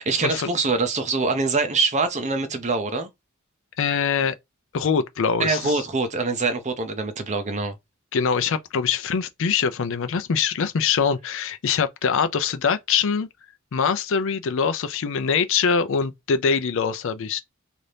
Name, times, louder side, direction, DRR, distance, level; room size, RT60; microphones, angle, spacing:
voice 1, 0.0-3.1 5.4-7.8, right 3 dB, 35° right, 0.6 m, -24 dB
voice 2, 3.8-4.3 4.7-5.8 8.1-13.3 13.7-17.4, left 6 dB, 65° left, 0.4 m, -23 dB
2.8 x 2.5 x 3.3 m
head